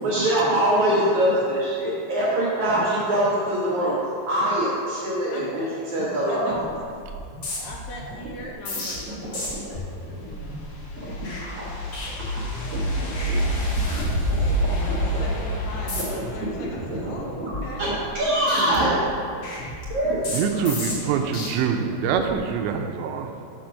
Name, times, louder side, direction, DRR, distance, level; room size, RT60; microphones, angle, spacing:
voice 1, 0.0-4.0 4.3-6.5 9.3-9.6 11.0-11.3 12.7-13.4 13.9-14.1 14.9-15.0 16.1-16.2 16.6-16.7 17.0-19.0 19.9-20.4, right 1 dB, 65° right, -8 dB, 1.9 m, -24 dB
voice 2, 6.2-6.7 7.6-11.9 12.9-17.8 19.0-19.2, left 2 dB, 80° left, -1 dB, 2.6 m, -40 dB
sound 1, 6.5-6.8 7.0-12.8 13.1-13.3 13.6-14.5 14.9-15.2 15.7-16.3 16.7-18.2 18.5-21.5 22.0-22.4, left 1 dB, 45° left, 2.0 m, -35 dB
sound 2, 10.0-17.2, equal, 60° left, 2.5 m, -27 dB
voice 3, 20.3-23.3, right 7 dB, 85° right, 5 dB, 2.8 m, -25 dB
7.4 x 5.8 x 6.3 m, 2.3 s
omnidirectional pair, 5.1 m